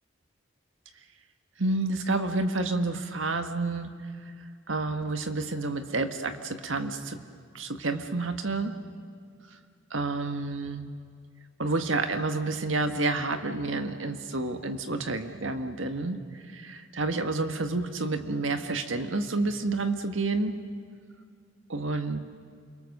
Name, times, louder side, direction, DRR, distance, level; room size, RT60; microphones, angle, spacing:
voice 1, 1.6-3.9 4.7-7.2 7.5-8.7 9.9-10.9 11.6-20.5 21.7-22.2, right 3 dB, 90° right, 7 dB, 1.7 m, -29 dB
29.5 x 23.0 x 6.8 m, 2.2 s
head